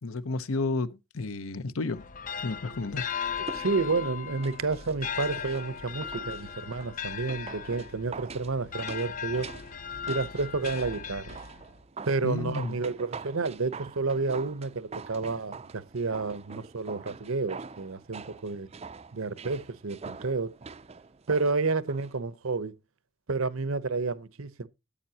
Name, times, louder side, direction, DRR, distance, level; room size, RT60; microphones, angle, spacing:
voice 1, 0.0-2.0 2.4-3.1 12.2-12.8, left 3 dB, 75° left, 0.8 m, -31 dB
sound 1, 1.9-11.8, left 7 dB, 40° left, 0.5 m, -37 dB
sound 2, 3.3-22.2 22.5-22.6, right 4 dB, 30° right, 0.4 m, -45 dB
voice 2, 3.4-9.5 10.1-11.4 12.0-18.7 19.1-20.5 21.3-22.7 23.3-24.7, right 4 dB, 70° right, 0.8 m, -30 dB
14.0 x 8.6 x 2.8 m
head